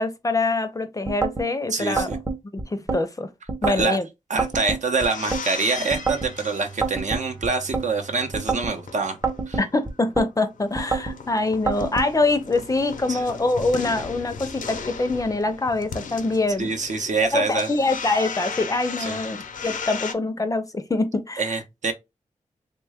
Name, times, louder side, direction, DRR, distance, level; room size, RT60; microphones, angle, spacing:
voice 1, 0.0-2.2 2.7-3.3 3.6-4.1 9.6-16.7 17.3-21.6, left 2 dB, 25° left, 0.5 m, -24 dB
sound 1, 1.1-1.5 2.0-3.0 3.5-3.9 4.4-5.4 5.9-6.3 6.8-7.9 8.3-8.8 9.2-10.3 10.8-11.2 11.7-12.1, right 4 dB, 20° right, 0.6 m, -27 dB
voice 2, 1.7-2.2 3.6-4.0 4.3-9.2 9.5-9.6 13.1-13.2 16.6-17.7 19.0-19.2 21.4-21.9, right 4 dB, 65° right, 0.7 m, -25 dB
sound 2, 4.5-7.3 7.7-9.8 10.1-10.2 10.4-20.1, left 5 dB, 85° left, 0.5 m, -36 dB
Bowed string instrument, 5.8-10.1, right 5 dB, 85° right, 1.0 m, -45 dB
3.1 x 2.2 x 3.4 m
wide cardioid pair, 85°, 13 cm